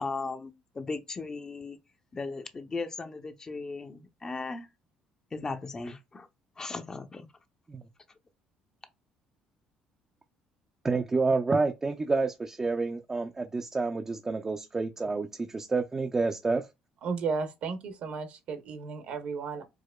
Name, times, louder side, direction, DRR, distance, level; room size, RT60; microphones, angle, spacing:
voice 1, 0.0-1.8 2.1-4.7 5.3-6.3 6.6-7.3, left 3 dB, 30° left, 0.6 m, -37 dB
voice 2, 10.8-16.6, right 3 dB, 25° right, 0.4 m, -29 dB
voice 3, 17.0-19.6, right 5 dB, 65° right, 0.8 m, -34 dB
4.7 x 2.1 x 2.2 m
supercardioid pair, 75°, 2 cm